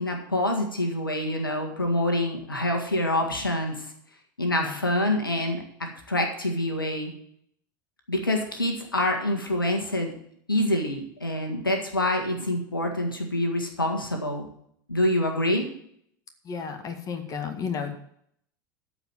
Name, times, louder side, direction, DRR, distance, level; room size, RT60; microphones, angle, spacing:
voice 1, 0.0-3.9 4.4-7.1 8.1-10.1 10.5-14.5 14.9-15.7, left 1 dB, 85° left, 4 dB, 1.8 m, -26 dB
voice 2, 16.4-17.9, left 6 dB, 30° left, 6 dB, 1.8 m, -32 dB
14.0 x 5.0 x 7.4 m, 0.67 s
figure-of-eight pair, 80°, 11 cm